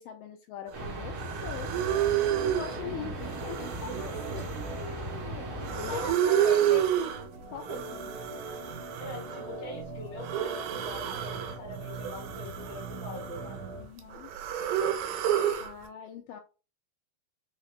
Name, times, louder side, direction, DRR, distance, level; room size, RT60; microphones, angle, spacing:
voice 1, 0.0-1.7 2.2-6.8 7.5-8.1 13.7-14.3 15.6-16.4, left 8 dB, 85° left, 4 dB, 2.0 m, -42 dB
sound 1, 0.7-6.1, right 1 dB, 40° right, 1.5 m, -38 dB
sound 2, 0.8-0.9 1.2-2.8 3.2-5.2 5.6-7.2 7.6-9.5 10.2-11.6 11.9-13.7 14.0-15.7, right 11 dB, 80° right, 2.6 m, -30 dB
Organ, 1.7-13.9, right 3 dB, 65° right, 2.2 m, -42 dB
voice 2, 5.8-6.7 9.0-13.6, left 3 dB, 55° left, -3 dB, 2.2 m, -42 dB
5.8 x 2.8 x 3.2 m, 0.32 s
omnidirectional pair, 4.4 m